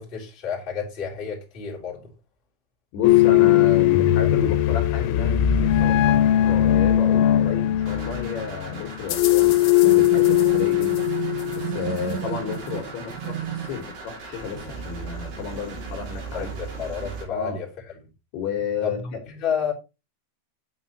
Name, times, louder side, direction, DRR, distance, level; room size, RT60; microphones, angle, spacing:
voice 1, 0.0-2.1 16.3-17.7 18.8-19.7, left 7 dB, 15° left, 2.2 m, -30 dB
voice 2, 2.9-6.2 6.4-11.1 11.6-16.5 17.3-17.6 18.3-19.2, left 6 dB, 70° left, 3.3 m, -32 dB
sound 1, 3.0-12.1, left 13 dB, 90° left, 3.1 m, -19 dB
sound 2, 7.8-17.2, right 4 dB, 60° right, 5.5 m, -38 dB
sound 3, 9.8-13.8, right 11 dB, 80° right, 3.5 m, -32 dB
9.4 x 7.6 x 2.9 m
omnidirectional pair, 5.2 m